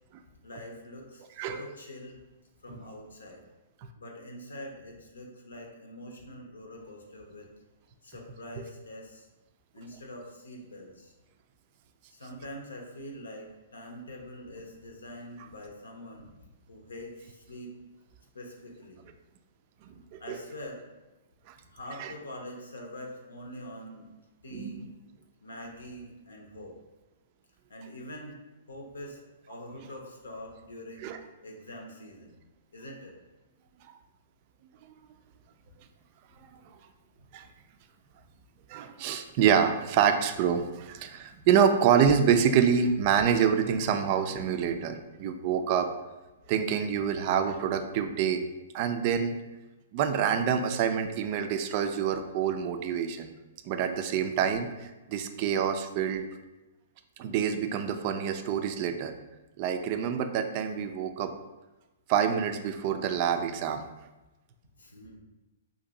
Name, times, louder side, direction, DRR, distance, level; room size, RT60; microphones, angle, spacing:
voice 1, 0.4-2.2 2.6-3.4 4.0-7.5 8.0-9.3 9.7-11.1 12.1-16.3 16.7-17.7 18.3-19.1 20.2-20.8 21.7-24.1 24.4-24.9 25.4-26.7 27.7-28.4 28.7-31.1 31.4-32.4 32.7-33.1 64.8-65.2, left 1 dB, 85° left, 1 dB, 0.7 m, -44 dB
voice 2, 24.5-24.9 31.0-31.2 37.3-37.4 38.7-45.9 46.5-48.4 48.7-49.3 49.9-53.3 53.7-56.2 57.2-59.1 59.6-61.3 62.1-63.9, right 8 dB, 45° right, 7 dB, 0.3 m, -26 dB
2.7 x 2.5 x 3.8 m, 1.1 s
hypercardioid pair, 125°, 0 cm